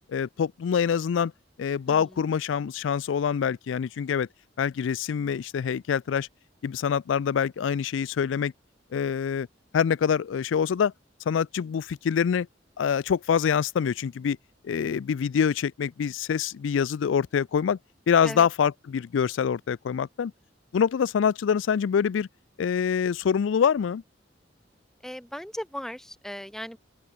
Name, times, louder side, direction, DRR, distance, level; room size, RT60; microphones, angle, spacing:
voice 1, 0.1-1.3 1.6-4.3 4.6-6.3 6.6-8.5 8.9-9.5 9.7-10.9 11.3-12.5 12.8-14.4 14.6-17.8 18.1-20.3 20.7-22.3 22.6-24.0, left 7 dB, 90° left, 0.4 m, -25 dB
voice 2, 25.0-26.8, equal, ahead, 0.5 m, -37 dB
open air
head